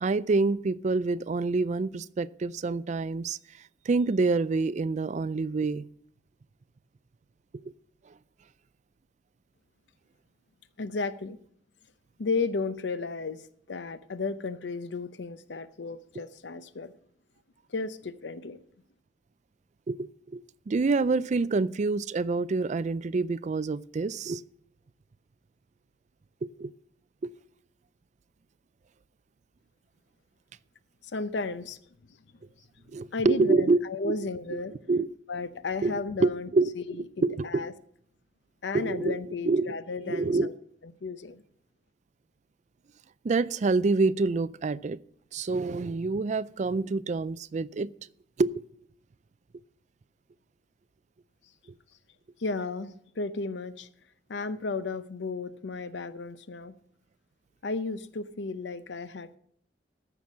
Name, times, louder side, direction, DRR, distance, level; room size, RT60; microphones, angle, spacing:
voice 1, 0.0-3.4 3.9-5.8 7.7-7.8 19.9-24.4 26.4-26.7 27.2-27.3 32.9-34.2 34.9-35.1 35.8-37.7 38.7-39.2 39.4-39.7 40.1-40.5 43.2-45.0 45.3-47.9 48.4-48.6, right 3 dB, 40° right, 18 dB, 0.4 m, -27 dB
voice 2, 10.8-11.4 12.2-13.4 13.7-16.9 17.7-18.6 31.0-31.8 33.1-34.8 35.3-36.5 37.2-37.7 38.6-40.5 41.0-41.4 52.4-53.9 54.3-56.8 57.6-59.4, left 3 dB, 75° left, 14 dB, 0.7 m, -34 dB
14.0 x 6.0 x 6.2 m, 0.66 s
head